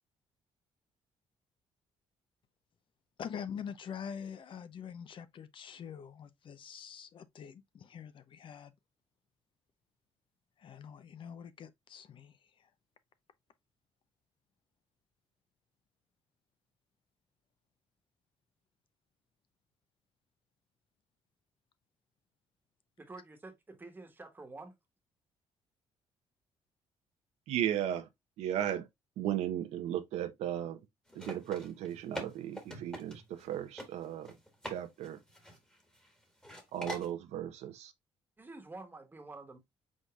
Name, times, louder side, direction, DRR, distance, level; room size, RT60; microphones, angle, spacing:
voice 1, 3.2-8.7 10.6-12.4, left 7 dB, 50° left, 0.6 m, -45 dB
voice 2, 23.0-24.7 38.4-39.6, right 3 dB, 20° right, 1.3 m, -48 dB
voice 3, 27.5-28.1 28.4-28.9 29.2-30.8 31.2-34.3 34.7-35.2 36.7-37.9, right 11 dB, 85° right, 0.9 m, -35 dB
sound 1, 31.1-33.5 33.8-33.9 34.2-34.8 35.0-36.1 36.4-37.1, equal, 5° left, 1.5 m, -44 dB
5.0 x 4.0 x 2.3 m
cardioid pair, 110°, 11 cm